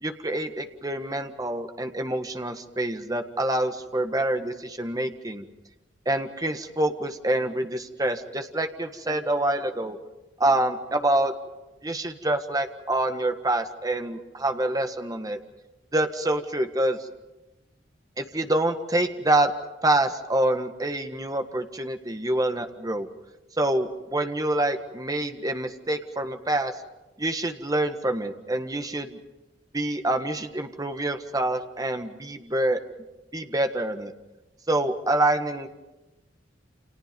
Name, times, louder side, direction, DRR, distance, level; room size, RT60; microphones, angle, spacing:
voice 1, 0.0-5.4 6.0-10.0 10.4-11.3 11.8-15.4 15.9-17.1 18.2-19.5 19.8-23.1 23.6-26.7 27.2-29.2 29.7-32.8 33.3-34.1 34.7-35.7, right 1 dB, 20° right, 6 dB, 1.7 m, -26 dB
29.5 x 27.5 x 5.3 m, 1.0 s
head